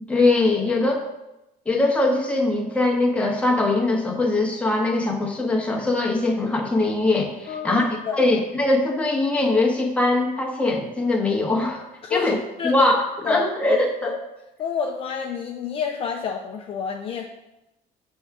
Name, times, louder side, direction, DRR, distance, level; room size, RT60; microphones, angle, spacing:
voice 1, 0.1-1.0 1.7-11.8 12.1-12.4 12.6-13.0 13.3-14.2, left 2 dB, 5° left, 0 dB, 0.9 m, -21 dB
voice 2, 12.0-12.3 12.6-12.9 13.2-14.1 14.6-17.3, left 6 dB, 35° left, 2 dB, 0.4 m, -29 dB
6.9 x 3.6 x 4.6 m, 0.93 s
cardioid pair, 165°, 16 cm